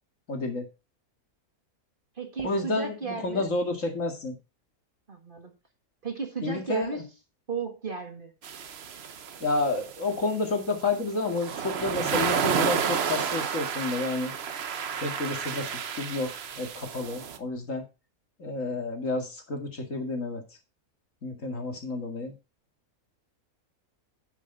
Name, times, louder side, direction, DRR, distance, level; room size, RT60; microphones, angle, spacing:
voice 1, 0.3-0.7 2.4-4.3 6.4-7.0 9.4-14.3 15.0-15.7 16.0-17.8 18.4-20.4 21.2-22.3, left 3 dB, 60° left, 3 dB, 2.5 m, -30 dB
voice 2, 2.1-3.5 5.1-5.5 6.0-7.1 7.5-8.3, right 5 dB, 35° right, 4 dB, 1.8 m, -34 dB
sound 1, 8.4-17.4, right 7 dB, 50° right, 0.9 m, -31 dB
9.1 x 8.1 x 3.9 m, 0.29 s
omnidirectional pair, 1.6 m